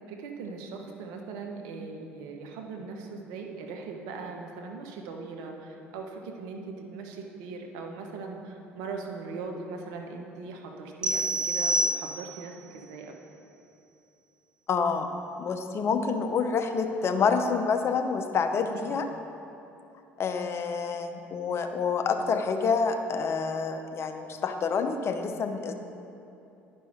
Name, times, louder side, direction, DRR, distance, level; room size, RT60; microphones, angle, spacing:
voice 1, 0.1-13.1 18.8-19.0, right 4 dB, 70° right, 2 dB, 1.0 m, -40 dB
sound 1, 11.0-12.6, right 1 dB, 15° right, 0.5 m, -28 dB
voice 2, 14.7-15.1 15.4-19.1 20.2-25.7, left 5 dB, 45° left, 6 dB, 0.8 m, -27 dB
10.5 x 5.3 x 4.9 m, 2.8 s
hypercardioid pair, 65°, 6 cm